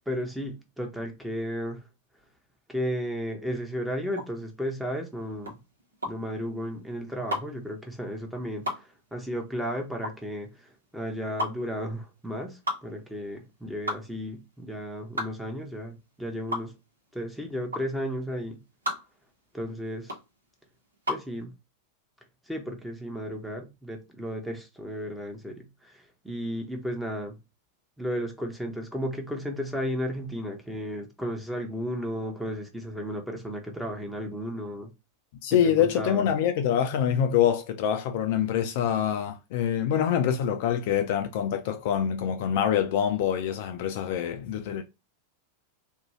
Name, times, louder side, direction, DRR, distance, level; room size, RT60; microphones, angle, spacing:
voice 1, 0.1-1.8 2.7-5.6 6.1-16.7 17.1-18.6 19.5-20.1 21.1-21.5 22.5-27.4 28.0-34.9 35.6-36.3, equal, 5° right, 0.7 m, -34 dB
sound 1, 4.1-21.3, equal, 80° right, 0.7 m, -35 dB
voice 2, 35.4-44.8, left 9 dB, 50° left, 0.3 m, -25 dB
2.5 x 2.2 x 3.0 m
figure-of-eight pair, 90°, 0 cm